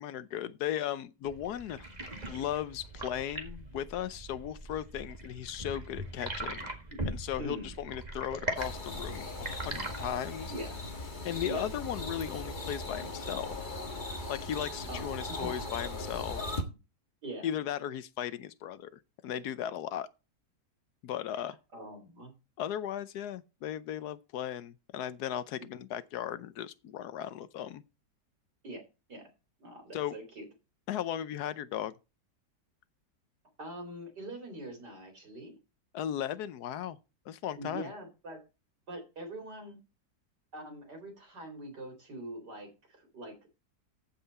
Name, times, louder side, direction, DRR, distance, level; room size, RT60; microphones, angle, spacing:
voice 1, 0.0-1.9 2.3-6.7 7.1-10.5 11.2-13.5 14.3-16.4 17.4-18.9 19.2-20.1 21.0-21.6 22.6-27.8 29.9-30.2 30.9-31.9 35.9-37.0 37.3-37.9, left 10 dB, 70° left, 1.2 m, -36 dB
sound 1, 1.2-10.1, right 1 dB, 25° right, 1.9 m, -40 dB
voice 2, 7.4-7.8 10.5-10.7 11.4-11.7 14.9-15.7 16.6-16.7 17.2-17.5 21.4-22.3 28.6-28.8 29.1-29.2 29.6-30.5 33.6-35.6 37.6-38.4 38.9-39.8 40.5-42.7 43.0-43.5, right 1 dB, 70° right, 4.6 m, -43 dB
sound 2, 8.6-16.6, left 2 dB, 30° left, 1.7 m, -39 dB
14.5 x 5.7 x 4.2 m
omnidirectional pair, 1.9 m